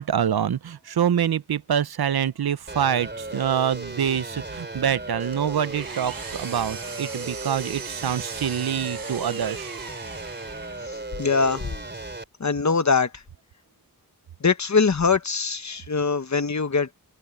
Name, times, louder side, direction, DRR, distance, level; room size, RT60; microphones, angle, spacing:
voice 1, 0.0-9.7, right 9 dB, 85° right, 0.8 m, -25 dB
sound 1, 2.7-12.2, right 2 dB, 30° right, 3.9 m, -36 dB
Engine, 5.3-11.0, right 6 dB, 70° right, 1.2 m, -39 dB
voice 2, 10.9-11.7 12.4-13.2 14.4-16.9, left 5 dB, 50° left, 1.3 m, -23 dB
open air
wide cardioid pair, 70°, 36 cm